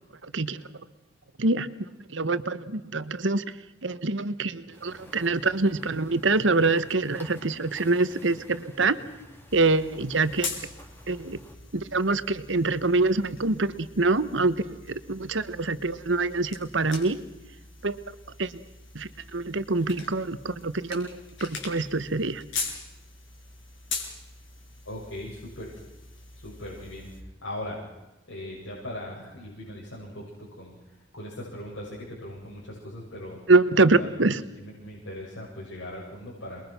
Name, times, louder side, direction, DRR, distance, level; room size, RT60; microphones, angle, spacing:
voice 1, 0.2-0.6 1.4-1.7 2.1-3.4 3.8-9.0 9.5-10.5 11.1-11.4 11.7-17.2 17.8-18.6 18.9-22.4 33.5-34.4, right 3 dB, 70° right, 13 dB, 1.3 m, -25 dB
sound 1, 4.7-11.6, equal, 10° left, 3.8 m, -50 dB
sound 2, 9.5-27.2, left 4 dB, 65° left, 5.8 m, -42 dB
voice 2, 24.9-25.7 26.4-27.1 27.4-27.8 28.3-33.4 33.8-34.1 34.6-36.6, left 1 dB, 85° left, -5 dB, 7.8 m, -39 dB
27.5 x 22.0 x 6.1 m, 1.0 s
head